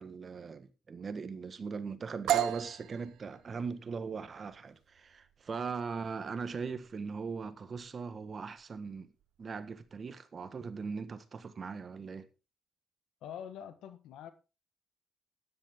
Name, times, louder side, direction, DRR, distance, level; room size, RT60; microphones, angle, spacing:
voice 1, 0.0-9.1 9.4-12.3, right 5 dB, 40° right, 1.5 m, -40 dB
sound 1, 2.3-9.9, right 12 dB, 80° right, 1.0 m, -38 dB
voice 2, 13.2-14.3, left 9 dB, 80° left, 1.5 m, -45 dB
13.0 x 10.5 x 3.7 m
cardioid pair, 90°, 0 cm